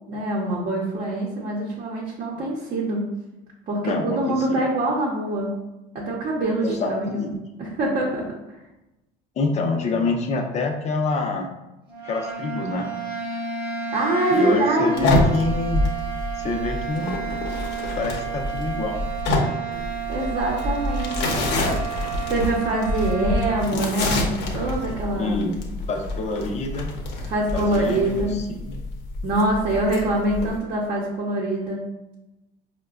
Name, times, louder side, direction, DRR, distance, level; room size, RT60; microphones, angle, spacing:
voice 1, 0.1-3.1 3.7-5.5 5.9-7.3 7.6-8.3 13.9-15.1 20.1-21.4 22.3-25.4 27.3-28.4 29.2-31.8, right 1 dB, 45° right, -4 dB, 0.8 m, -24 dB
voice 2, 3.8-4.6 6.6-7.4 9.4-11.5 12.0-12.9 14.3-15.8 16.3-17.1 17.9-19.0 21.5-21.8 25.2-25.6 25.9-26.9 27.5-28.8, left 3 dB, 35° left, 3 dB, 0.6 m, -27 dB
sound 1, 11.9-23.7, right 7 dB, 25° right, 1.0 m, -31 dB
sound 2, 15.0-30.6, left 2 dB, 70° left, 0.8 m, -27 dB
4.7 x 2.2 x 2.4 m, 0.98 s
cardioid pair, 120°, 19 cm